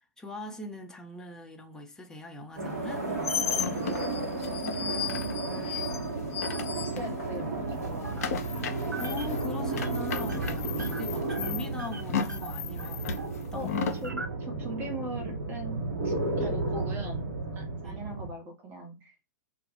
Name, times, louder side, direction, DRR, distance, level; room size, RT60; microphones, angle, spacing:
voice 1, 0.2-3.1 9.0-13.1 13.5-13.7 17.8-18.0, left 3 dB, 5° left, 0.5 m, -41 dB
sound 1, 2.6-18.3, right 3 dB, 50° right, 1.0 m, -33 dB
sound 2, 2.8-7.4 7.7-14.1, left 6 dB, 55° left, 0.5 m, -35 dB
voice 2, 4.5-5.9 6.7-8.5 13.5-13.7 14.0-17.2 17.5-19.1, right 1 dB, 25° right, 0.9 m, -41 dB
sound 3, 6.5-7.1 7.7-8.5 8.8-9.4 9.7-9.9 10.2-13.4 13.9-14.9, right 3 dB, 85° right, 0.4 m, -43 dB
2.3 x 2.1 x 3.4 m
figure-of-eight pair, 105°, 10 cm